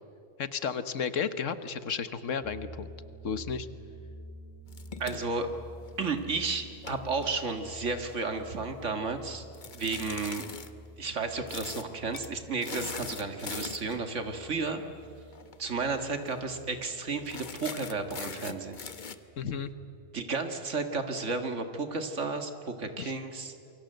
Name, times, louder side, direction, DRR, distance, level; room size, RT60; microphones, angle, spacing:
voice 1, 0.4-2.9 3.2-3.7 19.4-19.7 23.0-23.1, left 6 dB, 80° left, 12 dB, 1.5 m, -33 dB
sound 1, 2.4-19.5, equal, 10° left, 3.1 m, -50 dB
sound 2, 4.7-6.2 6.7-8.2 9.5-10.7 11.5-11.9 12.1-12.3 12.6-14.0 15.3-15.6 15.9-16.0 16.3-16.6 17.3-19.1, left 5 dB, 40° left, 1.1 m, -41 dB
voice 2, 5.0-5.5 6.0-9.4 9.7-10.4 11.0-14.8 15.6-18.8 20.1-23.6, right 4 dB, 75° right, 7 dB, 2.1 m, -33 dB
28.0 x 23.5 x 7.9 m, 2.6 s
omnidirectional pair, 1.3 m